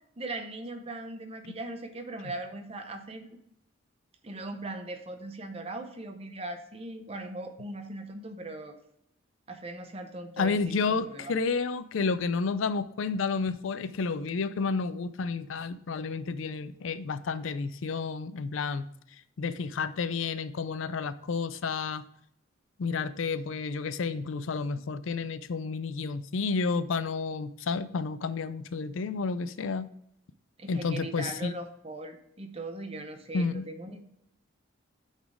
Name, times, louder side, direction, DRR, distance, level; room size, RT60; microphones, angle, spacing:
voice 1, 0.2-3.3 4.2-8.8 9.5-11.3 30.6-34.0, right 2 dB, 30° right, 6 dB, 0.8 m, -39 dB
voice 2, 10.4-18.8 19.4-22.0 22.8-29.9 30.7-31.5 33.3-33.7, left 4 dB, 80° left, 14 dB, 0.4 m, -31 dB
9.1 x 4.2 x 4.8 m, 0.74 s
head